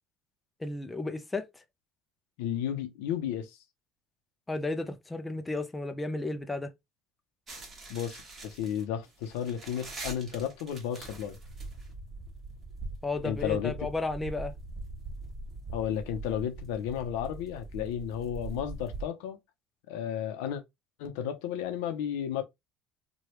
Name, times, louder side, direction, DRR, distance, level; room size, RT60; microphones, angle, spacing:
voice 1, 0.6-1.6 4.5-6.7 13.0-14.5, left 2 dB, 10° left, 0.5 m, -33 dB
voice 2, 2.4-3.5 7.9-11.4 13.2-13.7 15.7-19.4 19.9-20.6 21.0-22.4, left 9 dB, 85° left, 0.7 m, -33 dB
sound 1, 7.5-19.0, right 2 dB, 25° right, 1.2 m, -42 dB
3.2 x 2.3 x 2.9 m
supercardioid pair, 115°, 0 cm